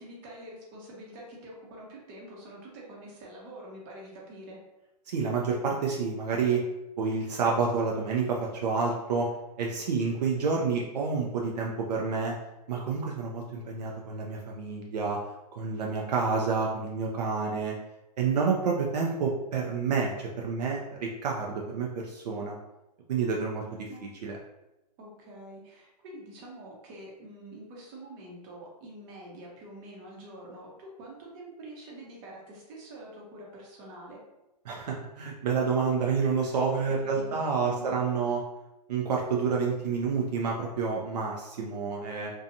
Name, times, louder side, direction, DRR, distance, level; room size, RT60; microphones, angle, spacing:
voice 1, 0.0-4.6 23.9-24.1 25.0-34.2 36.9-38.3, right 1 dB, 35° right, -2 dB, 0.9 m, -46 dB
voice 2, 5.1-6.6 7.0-9.3 9.6-12.3 12.7-15.2 15.5-17.7 18.2-22.6 23.1-23.9 24.2-24.4 34.7-38.4 38.9-42.3, right 5 dB, 70° right, -1 dB, 0.5 m, -29 dB
2.6 x 2.3 x 2.6 m, 0.96 s
hypercardioid pair, 135°, 21 cm